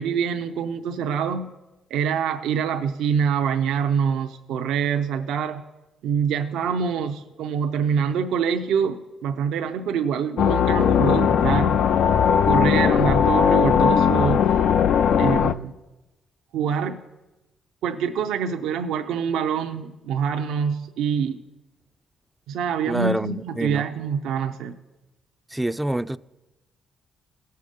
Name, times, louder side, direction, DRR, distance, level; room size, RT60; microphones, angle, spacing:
voice 1, 0.0-1.5 1.9-5.6 6.0-11.8 12.4-14.6 15.2-15.7 16.5-17.0 17.8-21.4 22.5-24.7, right 7 dB, 85° right, 0.5 m, -25 dB
sound 1, 10.4-15.5, left 8 dB, 70° left, 0.3 m, -19 dB
voice 2, 22.9-23.9 25.5-26.2, right 1 dB, 10° right, 0.3 m, -26 dB
17.0 x 6.7 x 5.1 m
cardioid pair, 90°, 0 cm